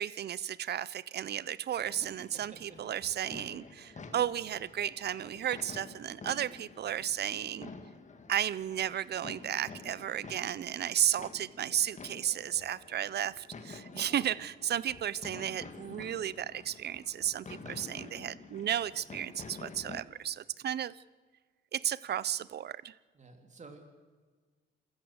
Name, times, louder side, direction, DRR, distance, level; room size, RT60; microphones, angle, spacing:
voice 1, 0.0-7.7 8.3-21.0 21.7-22.9, right 10 dB, 55° right, 20 dB, 0.7 m, -34 dB
sound 1, 1.8-20.0, left 4 dB, 35° left, 2.0 m, -49 dB
voice 2, 2.3-2.8 14.1-14.3 17.5-17.8 23.2-23.8, right 3 dB, 35° right, 4 dB, 3.5 m, -52 dB
28.5 x 14.0 x 8.1 m, 1.4 s
cardioid pair, 90°, 20 cm